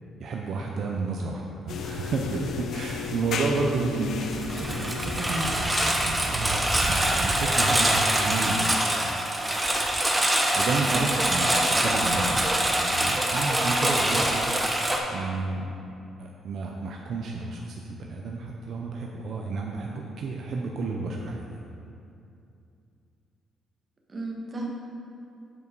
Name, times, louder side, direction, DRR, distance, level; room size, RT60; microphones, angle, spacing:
voice 1, 0.2-4.3 4.6-9.3 10.6-14.4 15.1-15.8 16.2-21.6, right 3 dB, 65° right, 0 dB, 0.6 m, -31 dB
sound 1, 1.7-6.3, left 6 dB, 70° left, 0.5 m, -34 dB
voice 2, 3.9-4.3 10.9-11.1 11.5-11.6 24.1-24.7, right 1 dB, 35° right, -1 dB, 1.3 m, -35 dB
Engine, 4.3-15.0, right 1 dB, 10° right, 0.9 m, -24 dB
7.6 x 5.3 x 4.7 m, 2.6 s
cardioid pair, 90°, 0 cm